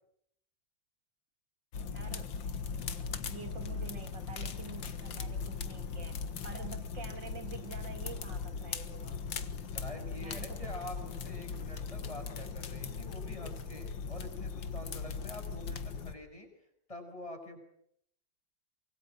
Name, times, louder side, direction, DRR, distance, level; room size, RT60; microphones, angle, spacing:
sound 1, 1.7-16.1, left 5 dB, 85° left, 2.3 m, -39 dB
voice 1, 1.9-2.6 3.3-9.2 10.2-10.7, right 6 dB, 70° right, 7 dB, 2.7 m, -48 dB
voice 2, 9.7-16.5 16.9-17.6, left 1 dB, 15° left, 5 dB, 6.5 m, -46 dB
25.0 x 23.5 x 7.8 m, 0.70 s
omnidirectional pair, 2.0 m